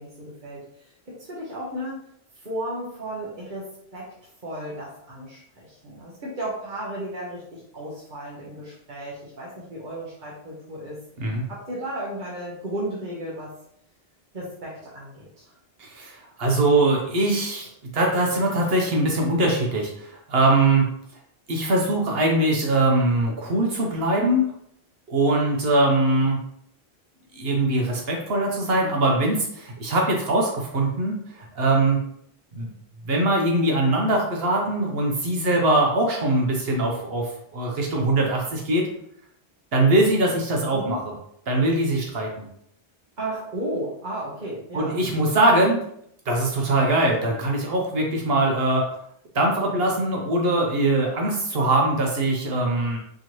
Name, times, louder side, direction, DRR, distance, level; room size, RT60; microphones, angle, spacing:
voice 1, 0.0-2.0 2.3-4.1 4.4-11.0 11.5-13.5 14.3-15.5 40.7-41.0 43.2-45.0, right 1 dB, 50° right, -7 dB, 1.1 m, -34 dB
voice 2, 15.8-20.9 21.5-24.5 25.1-26.4 27.4-32.0 32.5-32.7 33.0-38.9 39.7-41.1 41.5-42.5 44.7-45.8 46.3-48.8 49.3-53.0, right 2 dB, 70° right, 0 dB, 1.0 m, -22 dB
4.6 x 2.9 x 3.0 m, 0.70 s
omnidirectional pair, 1.1 m